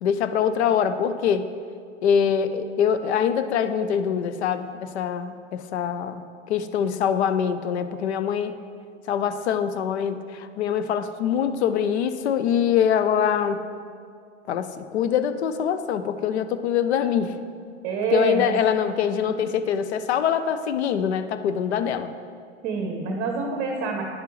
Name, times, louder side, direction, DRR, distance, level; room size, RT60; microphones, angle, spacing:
voice 1, 0.0-1.5 2.0-6.2 6.5-8.6 9.1-13.6 14.5-17.4 18.1-22.1, left 8 dB, 60° left, 11 dB, 0.6 m, -24 dB
voice 2, 17.8-18.5 22.6-24.0, right 4 dB, 35° right, 2 dB, 0.8 m, -26 dB
9.6 x 6.7 x 3.1 m, 2.2 s
figure-of-eight pair, 100°, 37 cm